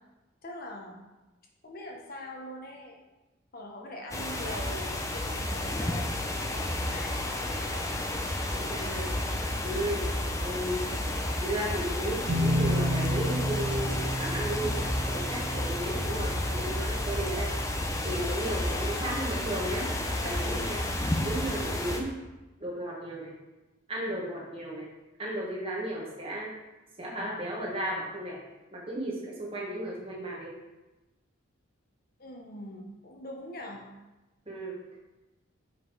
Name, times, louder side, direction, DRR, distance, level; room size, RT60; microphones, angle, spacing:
voice 1, 0.4-1.1 1.6-3.0 3.5-7.9 14.5-15.0 32.2-33.8, left 1 dB, 45° left, 0 dB, 1.0 m, -43 dB
sound 1, 4.1-22.0, left 1 dB, 15° left, 0.6 m, -31 dB
voice 2, 8.5-9.1 9.6-10.0 10.4-10.8 11.4-17.5 18.0-19.9 20.2-20.8 21.2-22.1 22.6-23.3 23.9-24.9 25.2-26.5 27.0-28.4 28.7-30.5 34.5-34.8, right 1 dB, 25° right, -3 dB, 1.4 m, -34 dB
sound 2, 12.3-17.9, equal, 45° right, 1.6 m, -32 dB
5.9 x 5.1 x 4.5 m, 1.1 s
head